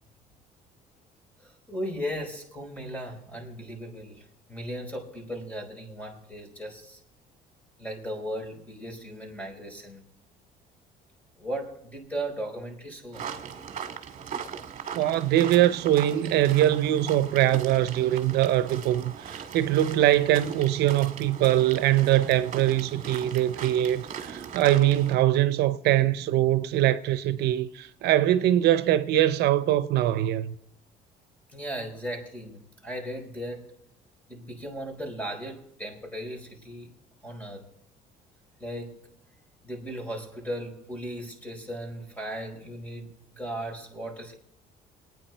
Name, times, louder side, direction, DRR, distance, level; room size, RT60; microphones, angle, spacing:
voice 1, 1.4-7.0 7.8-10.0 11.4-13.2 31.5-33.7 34.3-36.9 37.2-37.7 38.6-39.1 39.6-44.3, equal, 10° left, 4.7 m, -37 dB
sound 1, 13.1-25.1, right 7 dB, 45° right, 1.8 m, -39 dB
voice 2, 14.9-30.5, right 13 dB, 75° right, 0.7 m, -23 dB
25.0 x 9.6 x 4.5 m
cardioid pair, 110°, 17 cm